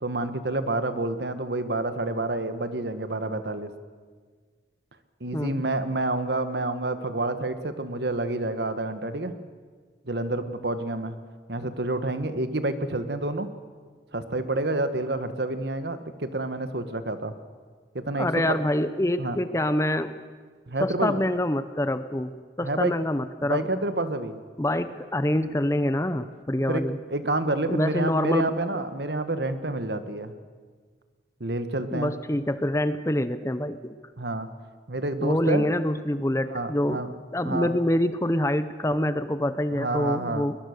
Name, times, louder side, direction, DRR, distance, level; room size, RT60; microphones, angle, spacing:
voice 1, 0.0-3.7 5.2-9.4 10.0-11.2 11.5-13.5 14.1-17.3 17.9-18.6 19.2-19.4 20.7-21.2 22.6-22.9 23.4-24.4 26.7-26.8 27.1-30.3 31.4-32.1 34.2-34.5 34.9-35.7 36.5-37.1 37.4-37.7 39.7-40.5, right 2 dB, 65° right, 10 dB, 1.5 m, -28 dB
voice 2, 5.3-5.6 18.2-20.2 20.8-23.7 24.6-27.0 27.7-28.5 31.9-33.9 35.2-37.0 37.3-40.6, left 1 dB, 15° left, 12 dB, 0.7 m, -26 dB
21.5 x 21.5 x 6.7 m, 1.5 s
head